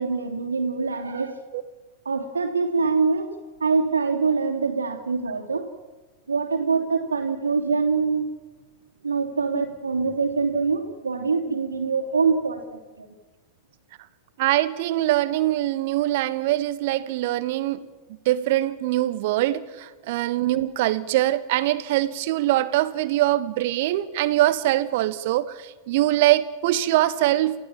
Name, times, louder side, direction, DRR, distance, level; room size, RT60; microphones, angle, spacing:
voice 1, 0.0-1.4 2.0-3.3 3.6-5.7 6.3-8.2 9.0-13.1, right 4 dB, 75° right, 4 dB, 3.0 m, -24 dB
voice 2, 14.4-17.8 18.2-27.5, right 15 dB, 50° right, 15 dB, 1.3 m, -23 dB
30.0 x 16.0 x 7.4 m, 1.3 s
figure-of-eight pair, 90°, 0 cm